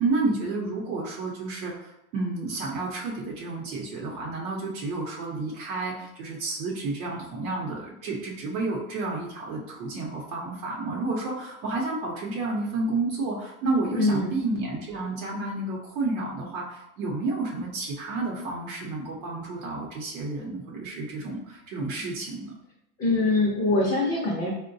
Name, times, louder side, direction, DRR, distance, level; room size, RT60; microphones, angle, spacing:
voice 1, 0.0-22.5, right 3 dB, 90° right, -2 dB, 0.7 m, -30 dB
voice 2, 14.0-14.4 23.0-24.5, left 2 dB, 20° left, -3 dB, 0.4 m, -23 dB
3.8 x 2.1 x 2.5 m, 0.86 s
supercardioid pair, 130°, 42 cm